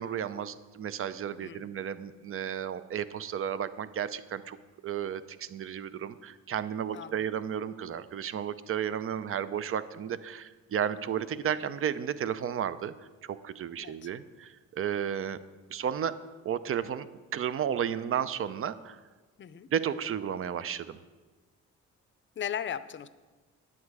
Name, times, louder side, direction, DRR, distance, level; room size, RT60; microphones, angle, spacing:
voice 1, 0.0-4.6 4.8-12.9 13.2-15.4 15.7-16.1 16.4-17.1 17.3-19.0 19.7-21.0, right 8 dB, 45° right, 14 dB, 0.6 m, -33 dB
voice 2, 1.4-1.7 6.9-7.3 13.8-14.1 19.4-19.7 22.4-23.1, left 8 dB, 40° left, 14 dB, 0.6 m, -37 dB
10.0 x 8.6 x 4.8 m, 1.3 s
cardioid pair, 90°, 30 cm